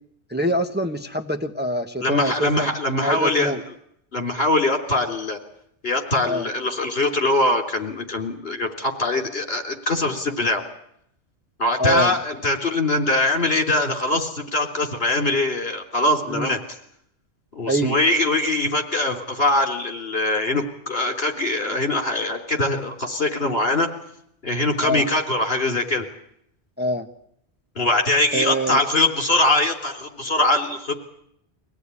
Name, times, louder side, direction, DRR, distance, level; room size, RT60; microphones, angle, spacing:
voice 1, 0.3-2.7 3.0-3.6 6.2-6.5 11.8-12.1 16.3-16.5 17.7-18.0 24.8-25.1 26.8-27.1 28.3-28.8, equal, 10° right, 5 dB, 1.2 m, -24 dB
voice 2, 2.0-3.5 4.1-5.4 5.8-10.6 11.6-16.6 17.5-23.9 24.4-26.0 27.8-30.9, left 2 dB, 60° left, 4 dB, 3.8 m, -22 dB
24.0 x 17.5 x 9.9 m, 0.73 s
omnidirectional pair, 1.1 m